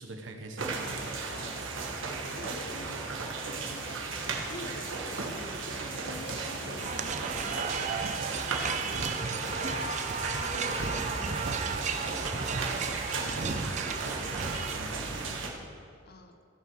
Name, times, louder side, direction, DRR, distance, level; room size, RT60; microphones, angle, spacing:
voice 1, 0.0-1.1 9.3-9.7 13.1-15.7, right 2 dB, 70° right, 5 dB, 1.1 m, -46 dB
sound 1, 0.6-15.5, right 3 dB, 85° right, 1.4 m, -35 dB
voice 2, 1.2-3.2 3.7-8.7 10.4-12.5 13.2-13.5 16.0-16.4, left 2 dB, 55° left, 6 dB, 0.9 m, -47 dB
sound 2, 6.8-14.8, right 5 dB, 40° right, 0.6 m, -34 dB
14.5 x 6.0 x 6.3 m, 2.4 s
head